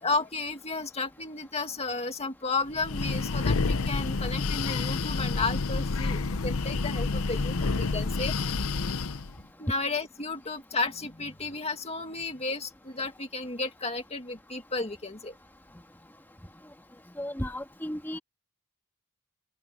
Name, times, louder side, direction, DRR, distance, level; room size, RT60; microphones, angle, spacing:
voice 1, 0.0-8.3 9.6-15.3, left 3 dB, 30° left, 2.1 m, -33 dB
Breathing, 2.7-9.3, left 3 dB, 65° left, 0.8 m, -29 dB
voice 2, 17.2-18.2, equal, 10° left, 2.3 m, -34 dB
open air
head